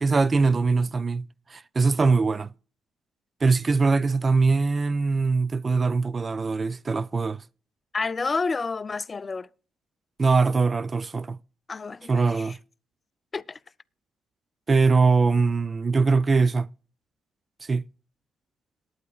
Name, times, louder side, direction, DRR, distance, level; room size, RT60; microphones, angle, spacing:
voice 1, 0.0-1.2 1.5-2.5 3.4-7.4 10.2-11.4 12.1-12.6 14.7-16.7 17.7-17.8, right 4 dB, 30° right, 0.4 m, -22 dB
voice 2, 7.9-9.5 11.7-12.6 13.3-13.6, left 4 dB, 30° left, 0.4 m, -30 dB
19.5 x 9.5 x 2.3 m
cardioid pair, 90°, 0 cm